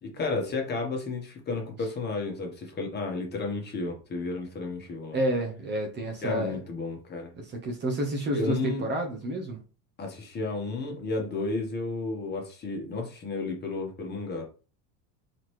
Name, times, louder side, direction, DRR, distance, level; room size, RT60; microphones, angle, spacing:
voice 1, 0.0-5.2 6.2-7.3 8.3-8.8 10.0-14.4, left 3 dB, 25° left, 1 dB, 1.4 m, -32 dB
voice 2, 5.1-6.6 7.3-9.6, right 1 dB, 30° right, 3 dB, 1.1 m, -29 dB
4.1 x 3.9 x 3.2 m, 0.34 s
cardioid pair, 140°, 38 cm